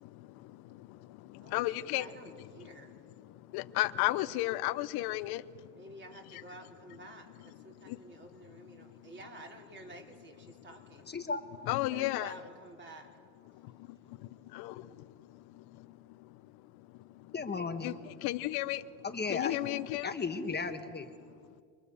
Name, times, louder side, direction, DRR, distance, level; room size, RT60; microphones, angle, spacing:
voice 1, 0.0-2.1 2.4-5.8 6.3-6.4 7.5-9.1 10.5-10.7 11.2-11.3 11.6-12.4 13.5-20.2 21.2-21.6, left 17 dB, 75° left, 0.9 m, -37 dB
voice 2, 1.4-2.9 5.7-11.1 11.8-13.1, right 1 dB, 30° right, 4.8 m, -51 dB
voice 3, 11.1-11.4 17.3-17.9 19.1-19.6 20.0-21.1, left 4 dB, 25° left, 1.3 m, -35 dB
28.0 x 23.0 x 7.0 m
supercardioid pair, 90°, 38 cm